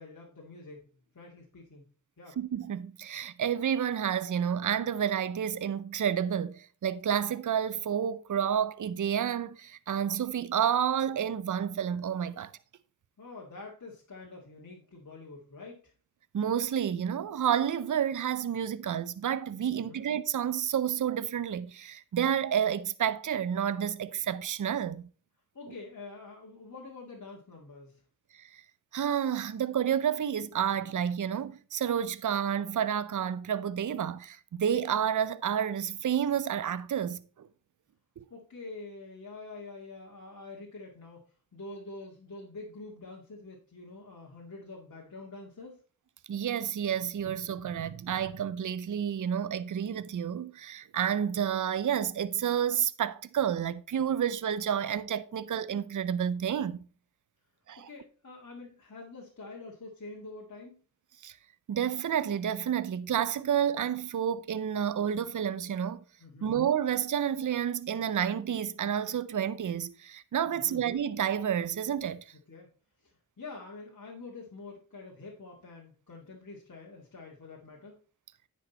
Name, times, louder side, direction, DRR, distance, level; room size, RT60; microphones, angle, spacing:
voice 1, 0.0-1.9 2.2-2.4 13.2-15.9 19.7-20.0 25.5-28.0 38.3-45.8 57.8-60.8 66.2-66.5 70.5-70.8 72.5-72.7 73.0-77.9, left 3 dB, 55° left, 2.1 m, -46 dB
voice 2, 2.4-12.5 16.3-25.1 28.3-28.6 28.9-37.5 38.2-38.3 46.3-56.9 57.7-57.9 61.2-61.4 61.7-66.0 66.4-72.2, right 9 dB, 55° right, 0.6 m, -30 dB
9.6 x 5.4 x 4.1 m
cardioid pair, 45°, 37 cm